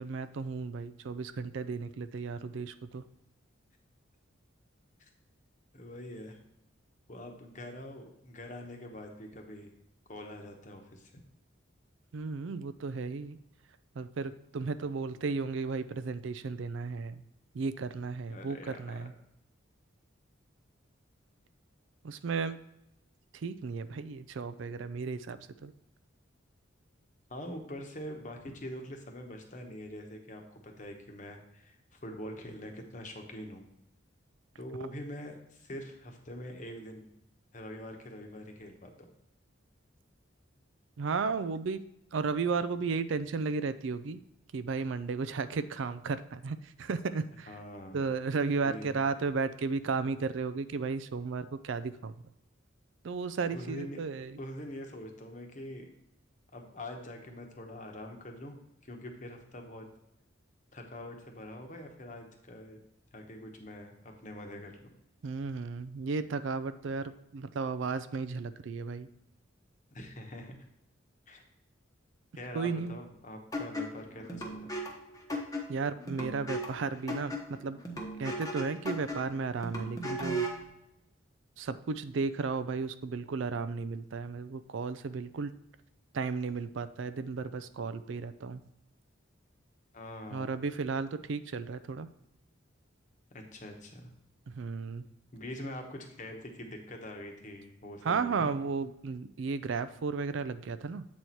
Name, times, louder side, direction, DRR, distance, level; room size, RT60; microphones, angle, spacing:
voice 1, 0.0-3.0 12.1-13.4 14.0-17.2 17.5-19.1 22.0-22.6 23.3-25.7 41.0-41.8 42.1-44.2 44.5-47.5 47.9-52.1 53.0-54.4 65.2-69.1 72.5-72.9 75.7-77.8 78.2-80.5 81.6-85.5 86.1-88.6 90.3-92.1 94.5-95.1 98.0-101.1, right 4 dB, 70° right, 13 dB, 0.4 m, -34 dB
voice 2, 5.7-6.4 7.1-9.7 10.1-11.1 18.3-18.7 27.3-33.6 34.6-37.1 37.5-38.9 47.5-48.0 48.6-49.0 53.5-54.0 54.4-55.9 56.5-58.6 58.8-59.9 60.7-62.8 63.1-64.9 69.9-70.6 71.3-71.4 72.4-74.7 89.9-90.5 93.3-94.1 95.3-98.5, left 1 dB, 40° left, 3 dB, 1.0 m, -44 dB
sound 1, 73.5-80.7, right 1 dB, 15° left, 0.9 m, -37 dB
7.9 x 4.2 x 4.5 m, 0.83 s
head